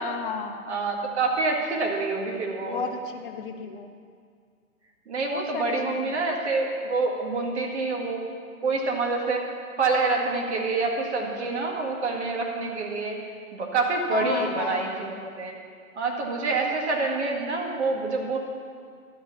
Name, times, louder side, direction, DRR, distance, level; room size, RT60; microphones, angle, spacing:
voice 1, 0.0-0.7 2.6-3.9 5.3-6.1 14.1-14.9, left 5 dB, 35° left, 5 dB, 0.9 m, -33 dB
voice 2, 0.7-2.8 5.1-8.2 8.6-9.4 9.8-13.2 13.5-15.5 16.0-18.4, right 3 dB, 50° right, 0 dB, 2.0 m, -27 dB
11.5 x 5.0 x 8.2 m, 2.1 s
hypercardioid pair, 140°, 43 cm